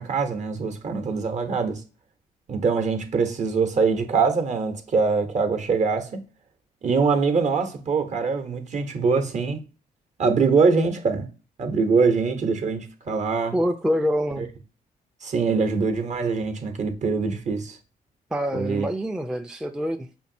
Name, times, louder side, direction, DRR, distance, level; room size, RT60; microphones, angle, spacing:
voice 1, 0.0-1.8 2.5-6.2 6.8-9.6 10.2-11.3 11.6-13.6 14.4-14.5 15.2-17.8 18.5-18.9, right 4 dB, 50° right, 0.8 m, -23 dB
voice 2, 13.5-14.5 18.3-20.1, equal, 5° right, 0.3 m, -25 dB
5.2 x 2.6 x 2.6 m
cardioid pair, 80°, 16 cm